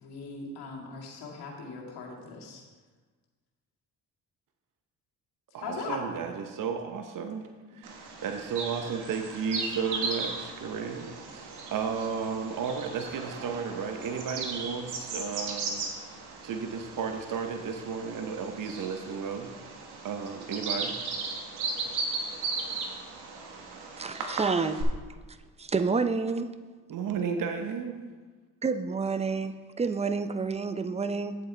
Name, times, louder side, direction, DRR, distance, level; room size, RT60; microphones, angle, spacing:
voice 1, 0.0-2.6 5.6-6.0, left 4 dB, 80° left, -2 dB, 2.1 m, -39 dB
voice 2, 5.5-7.4 7.7-15.8 16.4-19.7 20.0-20.9 26.9-27.9, right 6 dB, 55° right, 5 dB, 0.9 m, -33 dB
Bird vocalization bird call bird song, 7.8-24.8, right 4 dB, 85° right, 1.3 m, -37 dB
voice 3, 24.0-24.9 25.6-26.5 28.6-31.4, right 4 dB, 15° right, 11 dB, 0.5 m, -29 dB
10.0 x 7.9 x 3.3 m, 1.4 s
cardioid pair, 75°, 39 cm